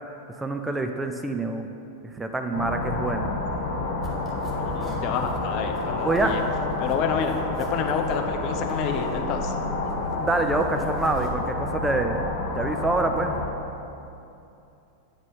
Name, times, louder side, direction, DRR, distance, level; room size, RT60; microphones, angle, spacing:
voice 1, 0.4-1.7 2.2-3.3 6.0-6.3 10.2-12.2 12.6-13.4, right 2 dB, 10° right, 5 dB, 0.4 m, -26 dB
sound 1, 2.5-13.5, left 2 dB, 60° left, 1.6 m, -29 dB
sound 2, 4.0-11.3, equal, 5° left, 1.0 m, -44 dB
voice 2, 4.5-6.4 6.8-9.5, left 6 dB, 40° left, 5 dB, 0.6 m, -29 dB
8.7 x 4.1 x 5.4 m, 2.7 s
figure-of-eight pair, 90°, 0 cm